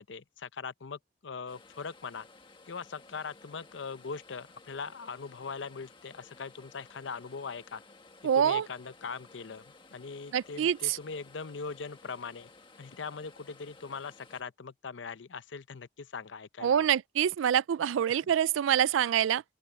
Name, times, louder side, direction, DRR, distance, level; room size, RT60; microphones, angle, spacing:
voice 1, 0.0-2.3 2.7-7.8 8.2-9.6 9.9-12.5 12.8-16.9 18.1-18.3, left 5 dB, 70° left, 0.6 m, -41 dB
sound 1, 1.5-14.4, left 3 dB, 25° left, 1.7 m, -56 dB
voice 2, 8.2-8.7 10.3-11.0 16.6-19.4, right 9 dB, 85° right, 0.3 m, -26 dB
open air
head